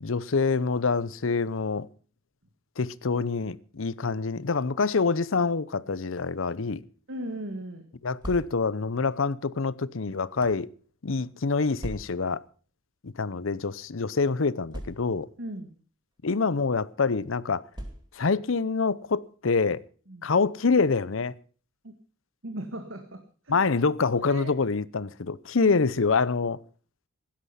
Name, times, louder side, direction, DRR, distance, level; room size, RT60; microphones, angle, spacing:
voice 1, 0.0-1.9 2.8-6.8 8.0-10.7 11.0-12.4 13.0-15.3 16.2-17.6 18.2-19.8 20.2-21.3 23.5-26.6, left 4 dB, 75° left, 0.7 m, -26 dB
voice 2, 7.1-7.9 15.4-15.7 20.1-20.3 21.8-22.0 22.4-23.6 24.2-24.6 25.6-25.7, right 1 dB, 70° right, 1.9 m, -37 dB
sound 1, 8.0-8.9 9.7-10.7 11.8-12.4 13.3-13.4 13.7-13.8 14.7-15.4 16.2-16.5 17.7-18.4, equal, 20° right, 2.5 m, -40 dB
16.5 x 11.5 x 5.7 m
head